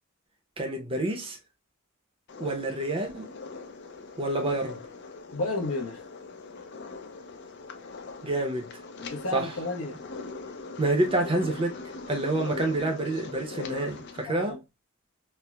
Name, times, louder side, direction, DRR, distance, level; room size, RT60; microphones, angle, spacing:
voice 1, 0.6-1.4 2.4-3.3 4.2-4.8 8.2-8.7 9.3-9.5 10.8-11.8 12.1-14.6, right 2 dB, 25° right, 0.6 m, -28 dB
sound 1, 2.3-14.3, left 3 dB, 50° left, 0.5 m, -41 dB
voice 2, 5.3-6.0 9.0-10.0 14.3-14.6, left 2 dB, 70° left, 0.8 m, -32 dB
4.4 x 2.0 x 2.3 m
head